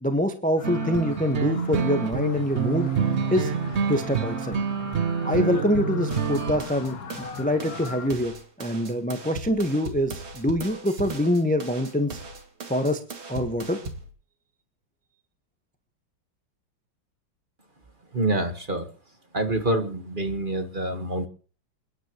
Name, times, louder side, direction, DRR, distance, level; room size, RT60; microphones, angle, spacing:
voice 1, 0.0-2.9 3.3-3.5 3.9-4.6 5.2-12.2 12.7-13.0 13.3-13.8, left 1 dB, 5° left, 8 dB, 0.9 m, -25 dB
sound 1, 0.6-8.1, left 5 dB, 50° left, 1.8 m, -40 dB
sound 2, 0.6-6.6, right 6 dB, 50° right, 0.8 m, -27 dB
sound 3, 6.1-14.1, right 3 dB, 85° right, 3.2 m, -38 dB
voice 2, 18.1-18.9 19.3-21.3, right 1 dB, 25° right, 7 dB, 1.6 m, -26 dB
28.5 x 9.9 x 3.1 m, 0.39 s
omnidirectional pair, 2.2 m